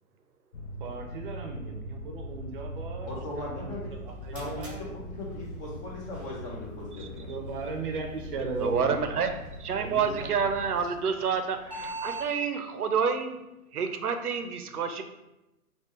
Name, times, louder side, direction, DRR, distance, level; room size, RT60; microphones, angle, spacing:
sound 1, 0.5-10.8, left 1 dB, 55° left, 0.7 m, -41 dB
voice 1, 0.8-3.1 3.4-4.8 7.2-9.4 9.8-10.7, right 3 dB, 35° right, 2 dB, 0.6 m, -37 dB
voice 2, 3.0-3.9 4.3-7.3, left 1 dB, 25° left, -3 dB, 0.7 m, -38 dB
sound 2, 3.8-12.3, right 2 dB, 5° right, 1.2 m, -46 dB
voice 3, 8.6-9.3 9.6-13.4 13.7-15.0, right 6 dB, 85° right, 7 dB, 0.5 m, -28 dB
3.2 x 2.8 x 3.1 m, 0.95 s
figure-of-eight pair, 120°, 44 cm